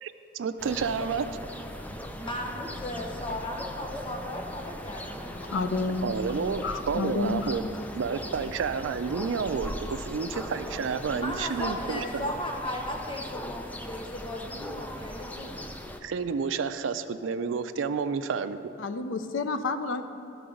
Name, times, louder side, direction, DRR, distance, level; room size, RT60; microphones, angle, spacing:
voice 1, 0.0-1.3 6.0-7.6 8.0-12.3 16.0-18.6, right 5 dB, 80° right, 11 dB, 0.4 m, -30 dB
sound 1, 0.6-16.0, equal, 10° left, 0.4 m, -39 dB
voice 2, 2.2-5.9 11.1-15.7, left 1 dB, 25° left, 1 dB, 1.0 m, -36 dB
voice 3, 5.5-6.1 6.6-7.5 18.8-20.0, left 3 dB, 85° left, 9 dB, 0.5 m, -30 dB
13.0 x 4.7 x 5.1 m, 2.7 s
head